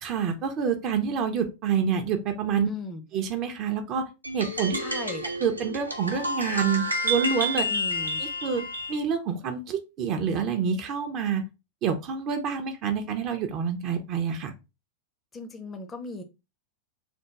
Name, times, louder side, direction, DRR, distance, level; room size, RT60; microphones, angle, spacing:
voice 1, 0.0-2.7 3.1-4.0 4.3-4.8 5.4-7.7 8.2-11.4 11.8-14.5, right 6 dB, 35° right, 6 dB, 0.5 m, -27 dB
voice 2, 2.7-3.0 4.7-5.3 7.7-8.3 15.3-16.2, left 3 dB, 20° left, 7 dB, 0.6 m, -38 dB
sound 1, 4.2-9.0, equal, 85° right, 0.6 m, -30 dB
3.4 x 2.2 x 2.9 m, 0.27 s
figure-of-eight pair, 90°, 0 cm